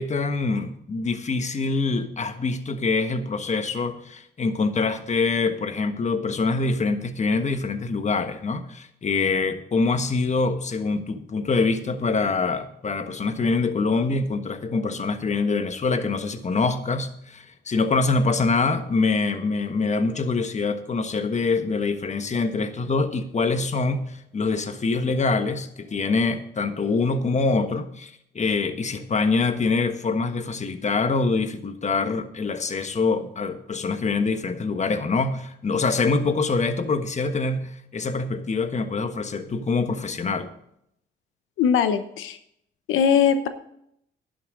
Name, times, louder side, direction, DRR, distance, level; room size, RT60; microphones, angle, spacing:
voice 1, 0.0-40.5, left 4 dB, 35° left, 9 dB, 1.3 m, -25 dB
voice 2, 41.6-42.4 42.9-43.5, left 7 dB, 85° left, 10 dB, 0.9 m, -20 dB
11.5 x 11.5 x 3.9 m, 0.73 s
cardioid pair, 90°, 20 cm